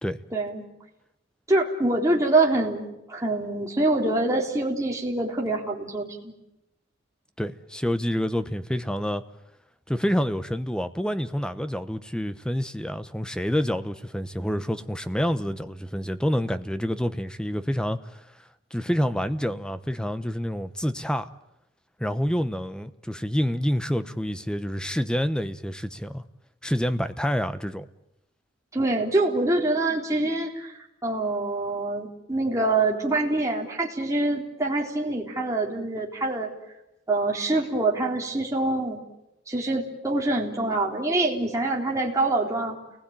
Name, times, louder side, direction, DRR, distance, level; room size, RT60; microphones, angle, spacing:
voice 1, 0.3-0.7 1.5-6.3 28.7-36.5 37.1-39.0 39.5-42.8, right 2 dB, 15° right, -2 dB, 3.9 m, -25 dB
voice 2, 7.4-9.2 9.9-18.2 18.7-21.3 22.0-26.2 26.6-27.8, equal, 5° left, 11 dB, 0.9 m, -27 dB
30.0 x 20.0 x 9.0 m, 0.92 s
head